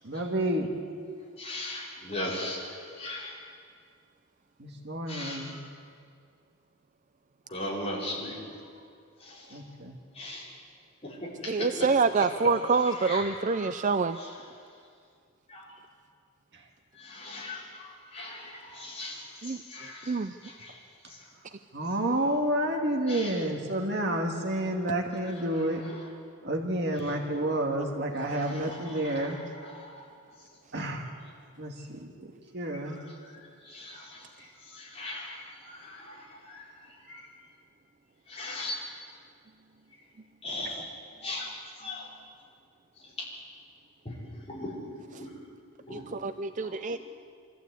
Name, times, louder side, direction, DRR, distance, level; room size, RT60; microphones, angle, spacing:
voice 1, 0.0-0.7 4.6-5.6 9.5-10.0 16.5-16.6 21.7-25.8 26.4-29.4 30.7-31.1 31.6-33.0, right 1 dB, 50° right, 2 dB, 2.1 m, -30 dB
voice 2, 1.4-3.5 5.1-5.7 7.5-8.7 9.2-9.6 10.1-10.5 11.0-11.9 12.2-12.3 12.8-14.8 15.5-15.7 16.9-21.3 23.1-23.5 25.2-26.1 27.0-27.2 28.2-30.5 32.7-37.3 38.3-38.8 40.4-40.9 41.2-42.1 43.0-43.3 44.0-45.4 45.8-46.1 46.6-47.0, left 1 dB, 25° left, -5 dB, 5.4 m, -40 dB
voice 3, 11.5-14.2 19.4-19.6 20.1-20.3 45.9-47.0, right 4 dB, 35° right, 10 dB, 0.5 m, -26 dB
25.0 x 14.5 x 8.3 m, 2.2 s
head